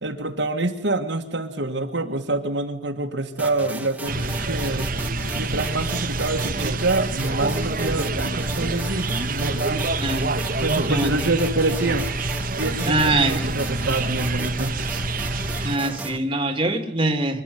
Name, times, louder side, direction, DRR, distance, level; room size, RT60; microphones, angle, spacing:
voice 1, 0.0-4.9 5.3-10.0 10.4-12.1 12.6-14.8, right 2 dB, 65° right, 3 dB, 1.9 m, -26 dB
sound 1, 3.4-16.2, right 2 dB, 10° right, 1.7 m, -36 dB
sound 2, 4.1-15.8, right 2 dB, 45° right, 1.3 m, -27 dB
voice 2, 12.9-13.3 15.6-17.4, right 2 dB, 25° right, 6 dB, 2.3 m, -23 dB
25.5 x 13.0 x 9.4 m, 0.73 s
head